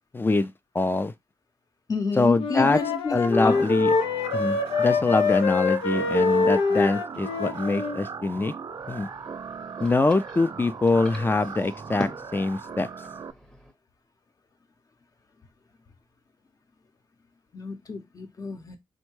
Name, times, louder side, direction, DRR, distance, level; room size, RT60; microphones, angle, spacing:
voice 1, 0.1-1.1 2.2-2.8 3.1-3.9 4.3-8.5 8.9-9.1 9.8-12.9, left 3 dB, 25° left, 0.4 m, -24 dB
voice 2, 1.9-3.7 17.5-18.8, left 4 dB, 40° left, 0.8 m, -30 dB
Wind instrument woodwind instrument, 2.3-8.0, left 4 dB, 85° left, 0.5 m, -25 dB
sound 1, 3.3-13.3, right 6 dB, 45° right, 0.3 m, -38 dB
sound 2, 8.7-13.7, left 1 dB, 5° left, 0.8 m, -43 dB
3.5 x 2.1 x 3.1 m
cardioid pair, 60°, 9 cm